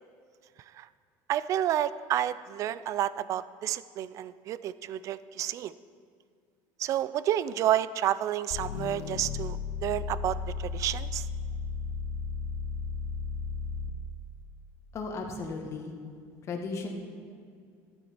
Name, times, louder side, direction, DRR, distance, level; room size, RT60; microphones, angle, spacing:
voice 1, 1.3-5.7 6.8-11.3, right 11 dB, 50° right, 16 dB, 0.4 m, -30 dB
sound 1, 8.5-14.1, left 5 dB, 80° left, 0.7 m, -34 dB
voice 2, 14.9-15.9 16.5-16.9, left 4 dB, 40° left, 2 dB, 1.5 m, -35 dB
12.5 x 8.5 x 4.4 m, 2.2 s
supercardioid pair, 115°, 7 cm